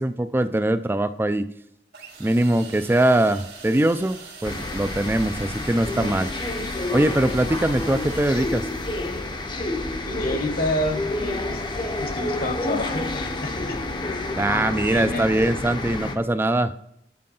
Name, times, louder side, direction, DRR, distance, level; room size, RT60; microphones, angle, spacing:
voice 1, 0.0-1.5 2.2-6.3 6.9-8.7 14.4-16.7, right 1 dB, 15° right, 12 dB, 0.3 m, -22 dB
sound 1, 1.9-9.6, right 5 dB, 70° right, 2.0 m, -43 dB
sound 2, 4.4-16.2, left 2 dB, 25° left, 0.6 m, -29 dB
voice 2, 10.1-13.8 14.8-15.3, left 1 dB, 55° left, 6 dB, 1.1 m, -29 dB
7.6 x 4.6 x 5.5 m, 0.75 s
head